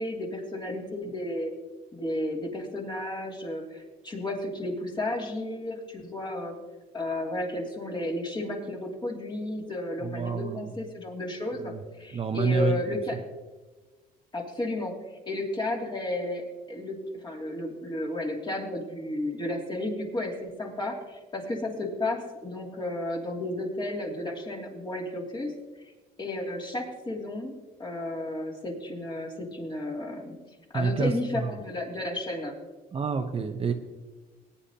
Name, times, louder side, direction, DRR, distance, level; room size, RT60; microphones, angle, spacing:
voice 1, 0.0-1.5 1.9-6.6 6.9-13.2 14.3-14.9 15.3-25.5 26.2-30.4 30.7-32.5, left 1 dB, 25° left, -1 dB, 2.8 m, -33 dB
voice 2, 10.0-10.7 11.6-11.8 12.1-12.8 30.7-31.5 32.9-33.7, right 5 dB, 35° right, 5 dB, 0.9 m, -28 dB
19.5 x 9.8 x 2.9 m, 1.3 s
cardioid pair, 110°, 17 cm